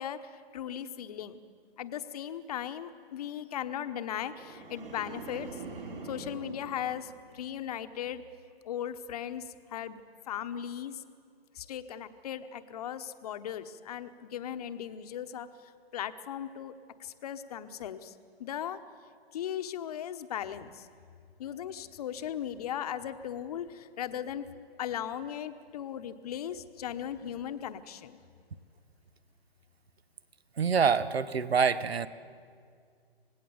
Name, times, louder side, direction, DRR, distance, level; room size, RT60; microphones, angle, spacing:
voice 1, 0.0-1.4 1.8-5.6 6.0-8.2 8.6-10.0 10.3-11.0 11.5-15.5 15.9-16.7 17.0-18.1 18.4-18.8 19.3-20.9 21.4-24.5 24.8-28.2, left 10 dB, 40° left, 10 dB, 1.1 m, -37 dB
sound 1, 4.2-7.6 8.0-8.4, right 3 dB, 60° right, 4.5 m, -45 dB
voice 2, 30.6-32.1, right 6 dB, 75° right, 15 dB, 1.1 m, -26 dB
26.5 x 18.5 x 7.1 m, 2.2 s
hypercardioid pair, 140°, 31 cm